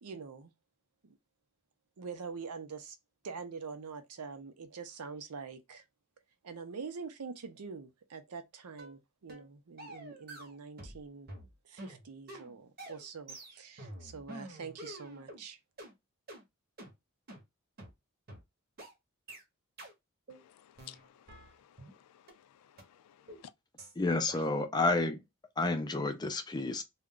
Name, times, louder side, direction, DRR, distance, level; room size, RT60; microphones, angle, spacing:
voice 1, 0.0-0.5 1.0-1.2 2.0-3.0 3.2-5.8 6.4-11.3 11.6-15.6, right 5 dB, 85° right, 0.6 m, -45 dB
sound 1, 8.8-9.0 9.3-9.5 9.8-11.0 11.3-15.4 15.8-15.9 16.3-16.4 16.8-16.9 17.3-17.4 17.8-17.9 18.3-18.4 18.8-18.9 19.3-19.4 19.8-19.9 20.3-20.4 20.8-21.9 22.3-22.4 22.8-22.9 23.3-23.4 23.8-23.9 24.3-24.4, right 1 dB, 45° right, 0.9 m, -48 dB
voice 2, 20.3-23.5, left 11 dB, 85° left, 0.3 m, -56 dB
voice 3, 24.0-25.2 25.6-26.8, left 2 dB, 20° left, 0.4 m, -30 dB
2.4 x 2.1 x 3.6 m
head